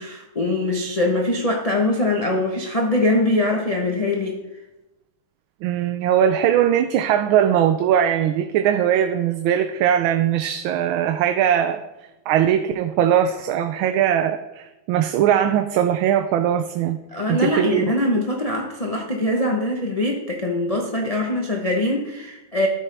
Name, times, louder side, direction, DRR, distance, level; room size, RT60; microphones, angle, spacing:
voice 1, 0.0-4.4 17.1-22.7, left 2 dB, 30° left, 0 dB, 0.6 m, -22 dB
voice 2, 5.6-11.8 12.3-17.0 17.3-17.8, right 10 dB, 85° right, 7 dB, 1.4 m, -20 dB
13.0 x 6.4 x 3.4 m, 0.98 s
omnidirectional pair, 2.2 m